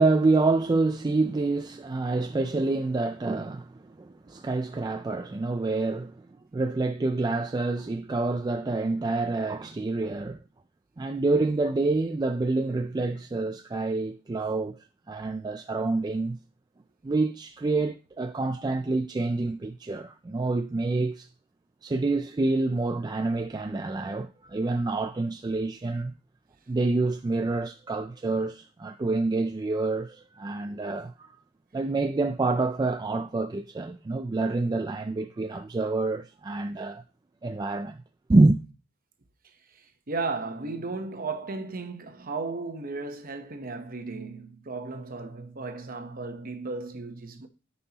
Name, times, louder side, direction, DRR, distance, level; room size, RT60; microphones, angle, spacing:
voice 1, 0.0-6.2 6.5-10.4 11.0-14.8 15.1-16.4 17.0-21.3 21.8-26.1 26.7-31.3 31.7-37.0 37.4-38.0 38.3-38.6, right 3 dB, 20° right, 0.3 m, -27 dB
voice 2, 39.7-47.5, right 3 dB, 40° right, 0.9 m, -35 dB
13.5 x 5.5 x 2.9 m
head